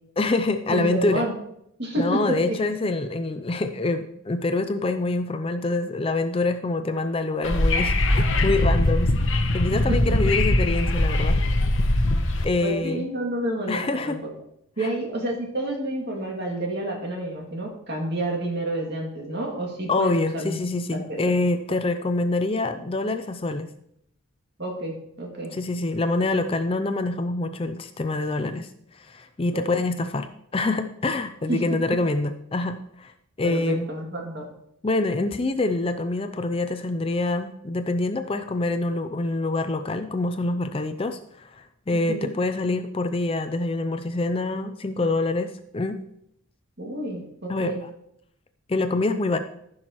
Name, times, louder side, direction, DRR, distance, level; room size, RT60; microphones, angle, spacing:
voice 1, 0.2-1.3 2.0-9.1 9.5-11.4 12.4-13.1 13.7-14.2 14.8-14.9 19.9-23.7 25.5-28.7 28.9-33.1 33.4-33.9 34.8-46.0 47.5-47.9 48.7-49.4, left 2 dB, 25° left, 9 dB, 0.4 m, -26 dB
voice 2, 0.7-1.3 1.8-2.2 2.5-2.6 7.7-7.9 9.7-9.8 12.5-14.2 14.8-20.6 20.9-21.3 24.6-25.5 29.5-29.8 31.5-31.6 33.4-34.5 41.9-42.3 46.8-47.8, right 1 dB, 50° right, -1 dB, 2.3 m, -29 dB
Wind / Subway metro underground, 7.4-12.4, left 1 dB, 65° left, 0.9 m, -21 dB
14.5 x 6.2 x 3.0 m, 0.74 s
head